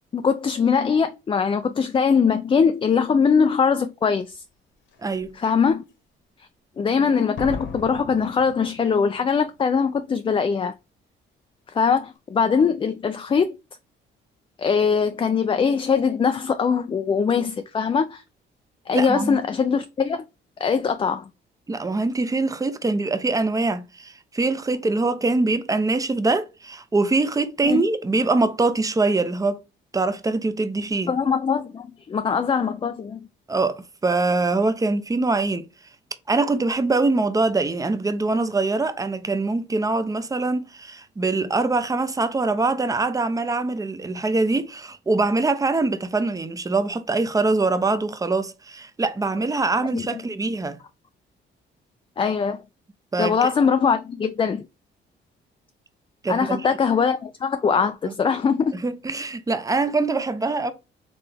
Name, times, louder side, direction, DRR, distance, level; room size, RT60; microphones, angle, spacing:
voice 1, 0.1-4.4 5.3-5.8 6.8-10.7 11.7-13.6 14.6-18.2 18.9-20.2 20.6-21.3 27.6-27.8 31.0-33.2 49.9-50.2 52.2-52.6 53.2-54.6 56.3-58.8, left 6 dB, 25° left, 0.3 m, -22 dB
Slam, 4.2-4.3 4.9-5.3 7.4-9.3 9.5-9.6, left 4 dB, 70° left, 1.1 m, -37 dB
voice 2, 5.0-5.4 18.9-19.4 21.7-29.6 29.9-31.1 33.5-35.7 36.3-50.8 53.1-53.5 56.2-56.7 58.0-58.1 58.7-60.7, right 3 dB, 15° right, 0.6 m, -23 dB
4.0 x 3.3 x 3.4 m
cardioid pair, 90°, 20 cm